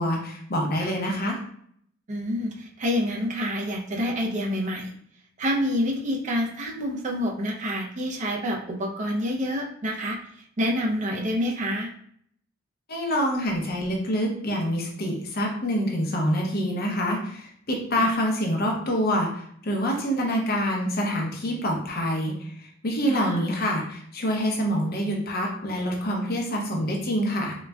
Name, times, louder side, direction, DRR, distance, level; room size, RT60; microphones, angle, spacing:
voice 1, 0.0-1.4 12.9-27.6, equal, 50° left, 0 dB, 0.7 m, -26 dB
voice 2, 2.1-4.9 5.4-10.2 10.6-11.9 18.0-18.2 23.1-23.5, equal, 40° right, -1 dB, 0.5 m, -27 dB
3.9 x 2.2 x 2.2 m, 0.65 s
head